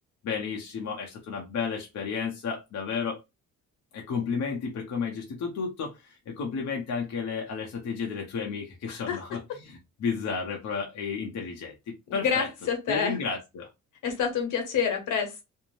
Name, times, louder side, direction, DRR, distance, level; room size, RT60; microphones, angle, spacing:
voice 1, 0.2-3.2 3.9-12.5 12.9-13.7, left 5 dB, 60° left, 0.7 m, -32 dB
voice 2, 8.9-9.2 12.1-13.2 14.0-15.4, left 7 dB, 80° left, 1.1 m, -28 dB
2.6 x 2.1 x 3.1 m
cardioid pair, 125°, 30 cm